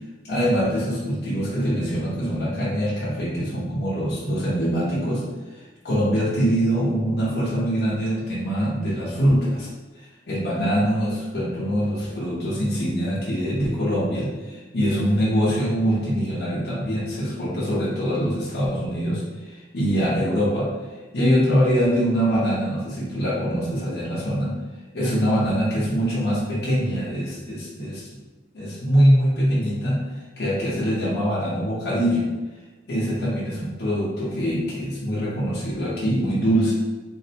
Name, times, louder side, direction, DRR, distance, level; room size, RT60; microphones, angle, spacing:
voice 1, 0.2-5.2 5.5-9.7 10.0-20.7 21.1-24.5 24.9-28.1 28.5-30.0 30.4-32.3 32.9-36.7, equal, 60° left, -8 dB, 0.8 m, -23 dB
3.3 x 2.6 x 2.8 m, 1.2 s
head